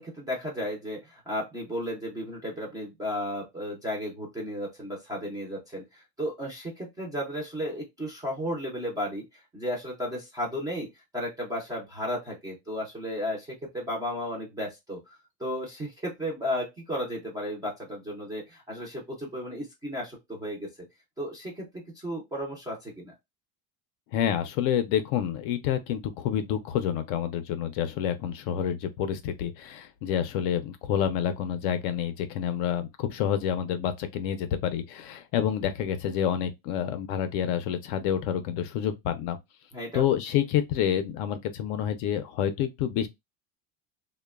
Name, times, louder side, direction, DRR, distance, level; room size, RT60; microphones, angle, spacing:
voice 1, 0.0-10.9 11.1-15.0 15.4-20.7 21.2-23.1 39.7-40.0, equal, 10° right, 0.3 m, -34 dB
voice 2, 24.1-39.4 39.9-43.1, left 9 dB, 55° left, 0.4 m, -28 dB
2.9 x 2.1 x 2.2 m
cardioid pair, 160°, 41 cm